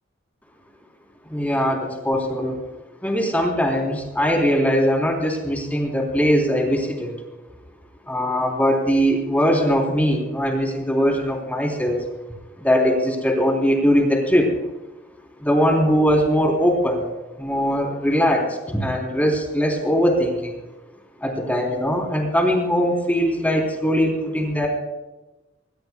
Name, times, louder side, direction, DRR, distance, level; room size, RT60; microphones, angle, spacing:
voice 1, 1.3-2.6 3.0-7.1 8.1-12.0 12.6-14.5 15.4-17.1 17.4-20.6 21.2-24.7, equal, 10° left, 0 dB, 3.6 m, -21 dB
21.0 x 20.0 x 2.3 m, 1.1 s
head